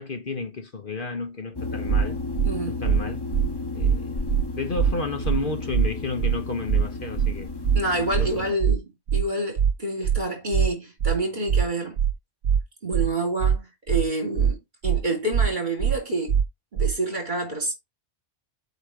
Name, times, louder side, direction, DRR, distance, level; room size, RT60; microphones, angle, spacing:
voice 1, 0.0-2.2 2.7-3.2 3.7-4.2 4.5-7.5 8.2-8.4, left 3 dB, 50° left, 1.3 m, -32 dB
sound 1, 1.5-8.5, left 3 dB, 20° left, 1.4 m, -33 dB
sound 2, 1.9-2.0 2.4-2.5 2.8-3.0 3.3-3.5 3.8-4.0 4.3-4.4 4.8-4.9 5.2-5.4 5.7-5.9 6.2-6.4 6.7-6.8 7.2-7.3 7.6-7.8 8.1-8.3 8.6-8.8 9.1-9.2 9.6-9.7 10.0-10.2 10.5-10.7 11.0-11.2 11.5-11.6 12.0-12.1 12.4-12.6 12.9-13.1 13.4-13.6 13.9-14.0 14.4-14.5 14.8-15.0 15.3-15.5 15.8-16.0 16.3-16.4 16.8-16.9, right 8 dB, 75° right, 1.0 m, -21 dB
voice 2, 2.4-2.8 7.7-12.0 12.8-16.4 16.7-17.7, right 2 dB, 40° right, 3.3 m, -28 dB
8.2 x 3.4 x 5.8 m
omnidirectional pair, 1.2 m